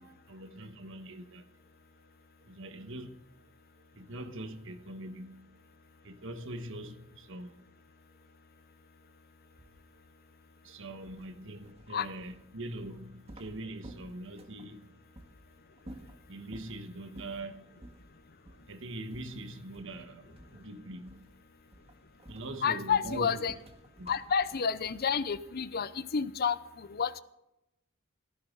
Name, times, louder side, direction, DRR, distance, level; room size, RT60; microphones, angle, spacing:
voice 1, 0.0-1.4 2.4-3.2 4.0-5.5 6.0-7.6 10.6-14.9 16.3-17.6 18.7-21.2 22.3-23.4 24.0-24.1, right 1 dB, 65° right, 1.5 m, -43 dB
sound 1, 11.0-14.7 15.1-15.3 15.8-16.8 17.1-17.5 17.8-18.0 18.4-18.7 19.1-20.1 20.4-20.7 21.1-21.4 21.7-25.6, right 1 dB, 30° right, 1.7 m, -52 dB
voice 2, 22.6-23.5 24.1-27.2, left 6 dB, 50° left, 0.7 m, -30 dB
17.0 x 14.5 x 3.9 m
head